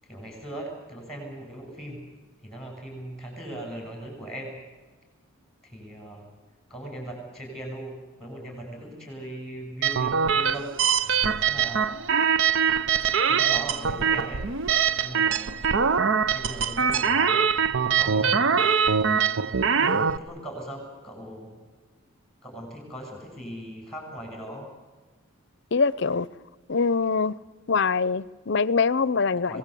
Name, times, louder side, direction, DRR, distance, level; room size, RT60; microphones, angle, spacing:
voice 1, 0.0-2.0 2.4-4.5 5.6-6.3 6.7-10.7 11.4-12.0 13.3-14.5 15.0-15.6 16.3-17.4 17.8-18.6 19.8-21.6 22.4-24.7 29.5-29.6, right 1 dB, 5° left, 2 dB, 7.8 m, -39 dB
sound 1, 9.8-20.2, right 6 dB, 60° right, 0.7 m, -23 dB
voice 2, 25.7-26.3 26.7-27.4 27.7-29.6, left 4 dB, 55° left, 20 dB, 0.6 m, -23 dB
25.5 x 18.5 x 8.4 m, 1.3 s
head